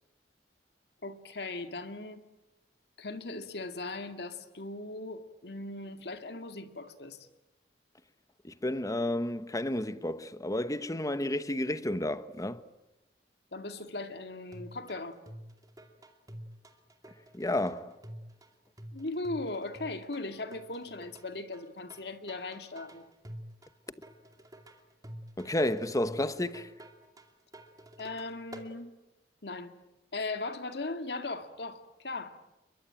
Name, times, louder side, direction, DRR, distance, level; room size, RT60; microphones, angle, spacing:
voice 1, 1.0-2.3 3.0-7.3 13.5-15.2 18.9-23.0 28.0-28.9 29.4-29.7 30.1-32.5, left 2 dB, 65° left, 2.1 m, -38 dB
voice 2, 8.4-12.6 17.3-18.0 25.4-26.7, left 1 dB, 20° left, 1.1 m, -31 dB
sound 1, 14.5-28.7, equal, 20° right, 2.5 m, -49 dB
29.5 x 22.5 x 8.9 m
head